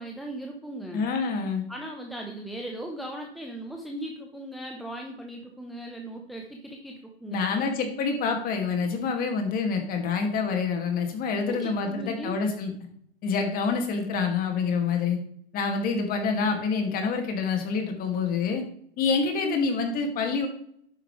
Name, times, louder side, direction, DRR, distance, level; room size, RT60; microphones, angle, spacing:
voice 1, 0.0-1.0 1.7-7.6 11.3-12.4, right 1 dB, ahead, 1 dB, 1.0 m, -38 dB
voice 2, 0.9-1.6 7.3-12.7 13.2-15.2 15.5-18.6 19.0-20.5, left 5 dB, 25° left, 4 dB, 2.4 m, -27 dB
11.0 x 8.6 x 3.3 m, 0.65 s
hypercardioid pair, 125°, 32 cm